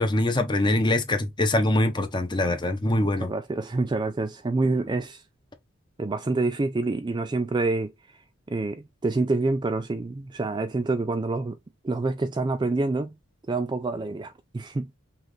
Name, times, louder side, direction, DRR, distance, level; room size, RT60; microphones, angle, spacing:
voice 1, 0.0-3.3, left 1 dB, 20° left, 0.8 m, -23 dB
voice 2, 3.2-5.2 6.0-7.9 8.5-11.6 11.8-13.1 13.5-14.9, right 3 dB, 20° right, 0.3 m, -27 dB
5.7 x 2.5 x 3.2 m
head